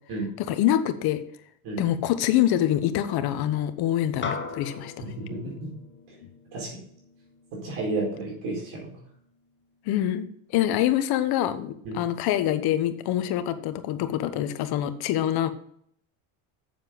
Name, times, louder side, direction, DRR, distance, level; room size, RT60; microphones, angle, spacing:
voice 1, 0.4-1.2 1.8-5.0 9.9-10.3 10.5-15.5, left 12 dB, 60° left, 10 dB, 1.1 m, -25 dB
sound 1, 4.2-8.9, left 5 dB, 25° left, 1.4 m, -39 dB
voice 2, 5.0-5.7 6.5-6.7 7.5-8.9 11.8-12.0, right 2 dB, 65° right, -3 dB, 4.5 m, -32 dB
7.7 x 7.1 x 5.3 m, 0.66 s
cardioid pair, 120°, 42 cm